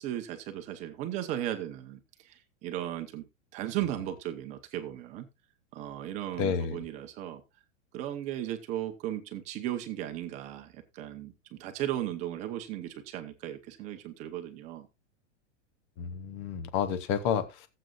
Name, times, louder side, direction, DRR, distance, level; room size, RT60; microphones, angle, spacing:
voice 1, 0.0-3.2 3.5-5.3 5.7-7.4 7.9-14.9, right 12 dB, 20° right, 0.9 m, -36 dB
voice 2, 6.4-6.8 16.0-17.7, left 7 dB, 15° left, 0.5 m, -30 dB
17.5 x 7.8 x 2.5 m
supercardioid pair, 170°, 37 cm